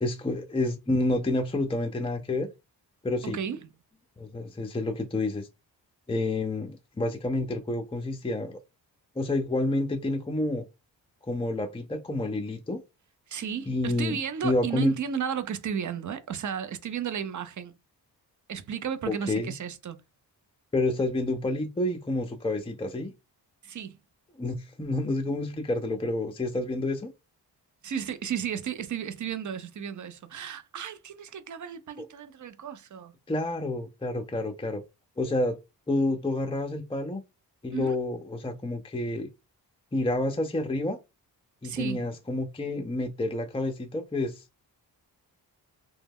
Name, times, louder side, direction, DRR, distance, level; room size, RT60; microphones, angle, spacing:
voice 1, 0.0-2.5 3.0-3.4 4.2-5.5 6.1-8.6 9.2-10.6 11.2-12.8 13.7-14.9 19.1-19.5 20.7-23.1 24.4-27.1 33.3-34.8 35.2-35.6 35.9-37.2 37.6-39.3 39.9-41.0 41.6-44.5, left 2 dB, 15° left, 0.4 m, -29 dB
voice 2, 3.2-3.7 13.3-17.8 18.5-20.0 23.6-24.0 27.8-33.1 37.7-38.0 41.6-42.0, right 8 dB, 40° right, 0.6 m, -34 dB
2.2 x 2.0 x 3.4 m
supercardioid pair, 45°, 45 cm